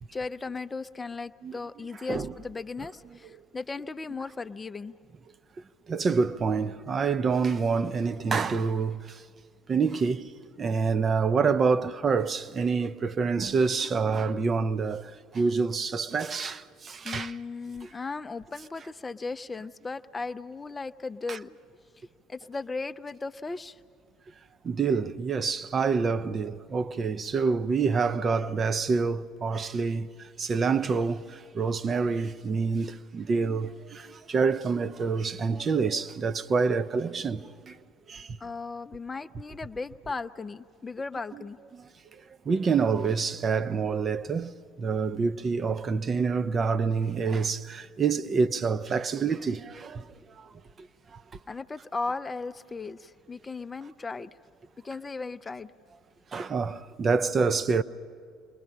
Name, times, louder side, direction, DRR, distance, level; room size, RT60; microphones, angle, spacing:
voice 1, 0.1-4.9 17.0-21.6 22.3-23.8 38.4-41.6 51.5-54.4 54.8-55.7, left 3 dB, 20° left, 0.5 m, -36 dB
voice 2, 5.9-9.2 9.7-10.3 10.6-17.4 17.8-17.9 21.3-21.4 24.6-37.8 38.1-38.4 42.1-44.5 44.8-50.1 50.4-50.5 50.8-50.9 51.1-51.2 56.3-57.8, right 5 dB, 35° right, 0.7 m, -27 dB
28.5 x 21.0 x 5.7 m
figure-of-eight pair, 55°, 0 cm